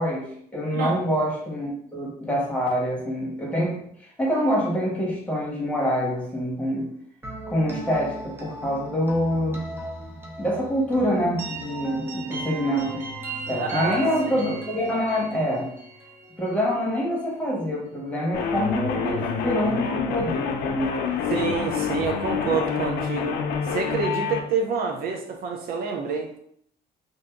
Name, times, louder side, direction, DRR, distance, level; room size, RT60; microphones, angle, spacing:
voice 1, 0.0-3.9 4.2-6.9 7.5-9.6 10.4-13.0 13.5-15.7 16.4-21.0 21.3-21.5, equal, 10° left, -4 dB, 1.2 m, -26 dB
sound 1, 7.2-17.0, right 2 dB, 15° right, 0.8 m, -37 dB
voice 2, 13.6-14.0 14.4-14.5 21.3-26.3, right 5 dB, 65° right, 3 dB, 0.5 m, -27 dB
sound 2, 18.3-24.4, left 6 dB, 75° left, 0.6 m, -27 dB
2.7 x 2.6 x 3.5 m, 0.66 s
cardioid pair, 110°, 17 cm